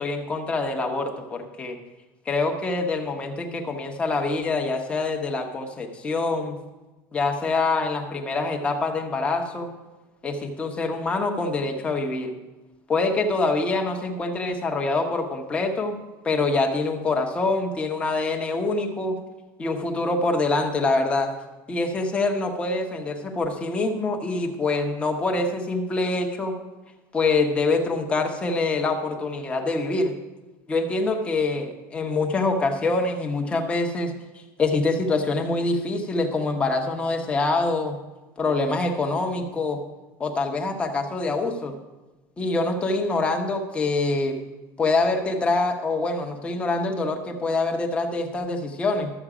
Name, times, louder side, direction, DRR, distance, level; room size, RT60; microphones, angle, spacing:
voice 1, 0.0-1.8 2.3-6.6 7.1-9.7 10.2-12.3 12.9-16.0 16.2-19.2 19.6-21.3 21.7-26.5 27.1-30.1 30.7-34.1 34.6-38.0 38.4-39.8 40.2-41.7 42.4-44.4 44.8-49.1, left 3 dB, 15° left, 2 dB, 1.0 m, -25 dB
12.0 x 7.9 x 4.9 m, 1.1 s
cardioid pair, 180°, 9 cm